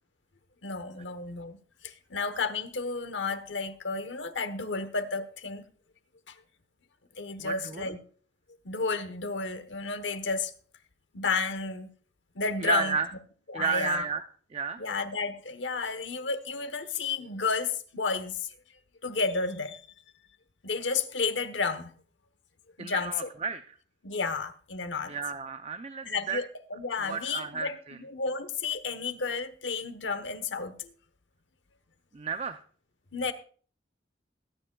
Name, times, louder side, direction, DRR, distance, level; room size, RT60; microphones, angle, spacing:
voice 1, 0.6-1.6 1.8-5.7 6.3-6.4 7.2-8.0 8.6-10.5 11.1-11.9 12.3-13.0 13.5-14.0 14.8-18.5 19.0-19.8 20.6-21.9 22.8-23.3 24.0-25.2 26.0-26.4 26.7-30.9 33.1-33.3, left 4 dB, 90° left, 1.0 m, -32 dB
voice 2, 7.4-7.9 12.6-13.1 13.5-14.2 14.5-14.8 22.8-23.6 25.1-26.4 27.0-28.0 32.1-32.6, right 5 dB, 35° right, 0.5 m, -32 dB
22.0 x 9.9 x 2.3 m
head